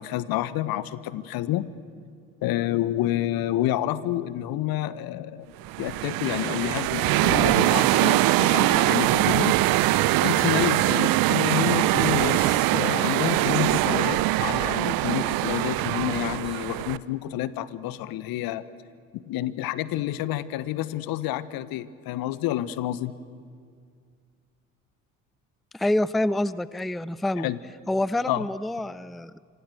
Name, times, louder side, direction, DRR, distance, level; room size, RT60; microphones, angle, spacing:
voice 1, 0.0-1.7 2.4-5.5 5.8-9.5 10.2-18.6 19.1-23.1 27.4-27.6 28.3-28.5, left 13 dB, 60° left, 16 dB, 1.2 m, -29 dB
sound 1, 5.6-17.0, right 17 dB, 60° right, 0.9 m, -22 dB
voice 2, 25.7-27.5 27.9-29.4, left 1 dB, ahead, 19 dB, 0.6 m, -27 dB
26.5 x 25.0 x 7.9 m, 2.2 s
hypercardioid pair, 55°, 40 cm